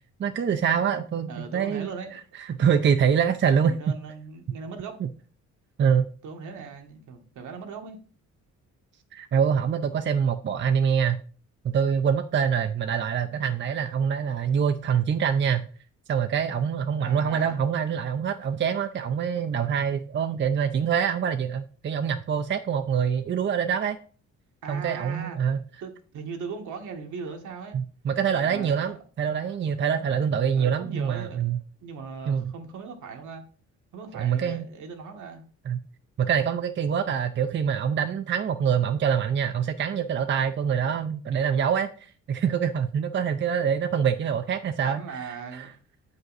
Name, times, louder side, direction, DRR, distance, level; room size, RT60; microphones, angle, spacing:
voice 1, 0.2-1.9 2.4-3.7 5.0-5.1 5.8-6.1 9.1-11.2 11.6-15.7 16.1-24.0 24.7-25.6 27.7-31.6 32.3-32.4 34.1-34.7 35.7-35.8 36.2-45.0 45.5-45.7, right 7 dB, 40° right, 0.6 m, -25 dB
voice 2, 1.3-2.1 3.6-5.0 6.2-8.0 17.0-17.6 24.6-25.4 25.8-27.8 28.3-29.0 29.4-29.5 30.6-31.5 31.8-33.4 33.9-35.4 40.7-40.9 44.9-45.7, right 5 dB, 75° right, 1.6 m, -39 dB
7.7 x 5.3 x 4.0 m
cardioid pair, 90°, 30 cm